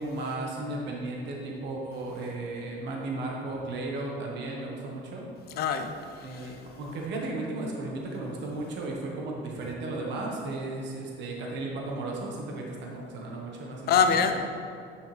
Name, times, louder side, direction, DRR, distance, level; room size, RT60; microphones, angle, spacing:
voice 1, 0.0-5.2 6.2-14.2, right 2 dB, 60° right, -1 dB, 1.3 m, -35 dB
voice 2, 5.6-6.5 13.9-14.4, left 6 dB, 50° left, 8 dB, 0.6 m, -25 dB
9.5 x 6.4 x 3.3 m, 2.3 s
cardioid pair, 150°, 20 cm